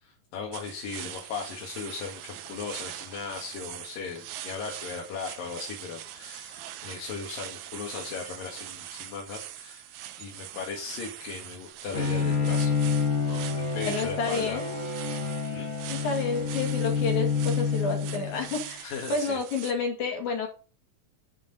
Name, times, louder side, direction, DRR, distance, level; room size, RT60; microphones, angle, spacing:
voice 1, 0.0-9.8 10.2-12.8 13.3-14.6 14.9-15.0 15.5-15.7 18.8-19.4, left 5 dB, 85° left, -2 dB, 3.6 m, -37 dB
sound 1, 0.5-19.7, right 12 dB, 80° right, 2.4 m, -42 dB
Bowed string instrument, 11.9-18.6, left 5 dB, 25° left, 1.7 m, -28 dB
voice 2, 13.9-14.7 15.9-20.5, left 4 dB, 60° left, 2 dB, 3.7 m, -30 dB
9.9 x 6.1 x 5.4 m, 0.36 s
omnidirectional pair, 3.9 m